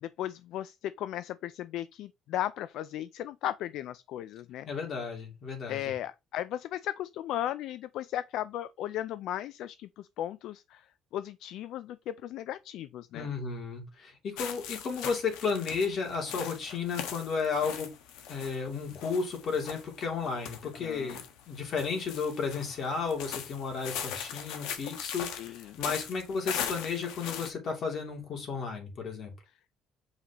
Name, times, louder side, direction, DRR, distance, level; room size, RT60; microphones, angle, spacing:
voice 1, 0.0-4.7 5.7-10.9 11.1-13.3 20.8-21.2 25.3-25.8, left 12 dB, 65° left, 0.3 m, -36 dB
voice 2, 4.7-5.9 13.1-17.9 18.3-21.2 21.5-29.3, left 5 dB, 40° left, 2.7 m, -33 dB
sound 1, 14.4-27.5, left 8 dB, 90° left, 1.3 m, -40 dB
8.1 x 4.9 x 3.0 m
cardioid pair, 145°, 0 cm